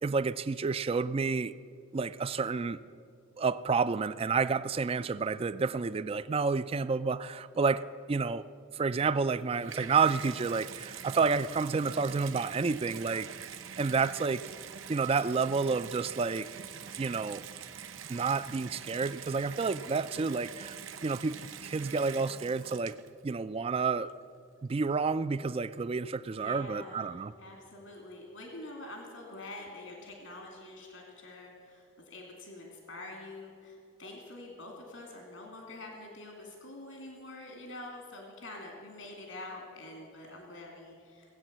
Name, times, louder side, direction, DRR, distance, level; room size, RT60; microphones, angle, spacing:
voice 1, 0.0-1.5 1.9-2.8 3.4-8.4 8.7-13.3 13.8-14.4 14.9-16.5 17.0-17.4 18.1-23.0 23.2-24.1 24.6-27.3, right 4 dB, 30° right, 15 dB, 0.3 m, -30 dB
Water tap faucet / Bathtub (filling or washing), 9.2-23.3 24.1-24.2, right 8 dB, 80° right, 0.7 m, -45 dB
voice 2, 26.4-41.4, left 2 dB, 80° left, 0 dB, 2.4 m, -46 dB
18.0 x 8.4 x 7.4 m, 2.4 s
head